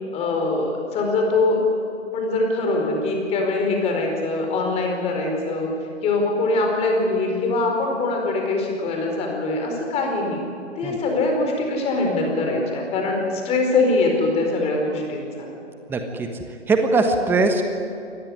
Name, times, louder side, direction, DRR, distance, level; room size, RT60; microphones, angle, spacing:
voice 1, 0.1-1.6 2.1-5.7 6.0-10.4 10.8-15.5, left 3 dB, 15° left, 1 dB, 4.5 m, -23 dB
voice 2, 15.9-16.3 16.7-17.6, right 3 dB, 5° right, 6 dB, 1.3 m, -20 dB
25.0 x 18.5 x 9.9 m, 2.7 s
figure-of-eight pair, 135°, 36 cm